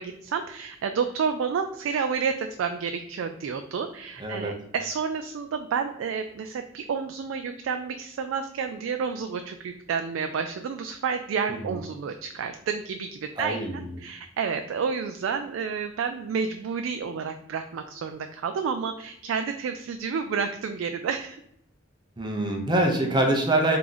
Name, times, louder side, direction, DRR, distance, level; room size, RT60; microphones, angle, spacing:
voice 1, 0.0-21.4, right 6 dB, 75° right, 7 dB, 0.3 m, -30 dB
voice 2, 4.2-4.5 11.5-11.7 13.4-13.8 22.2-23.8, right 1 dB, 25° right, 1 dB, 0.8 m, -25 dB
3.7 x 3.0 x 3.9 m, 0.75 s
head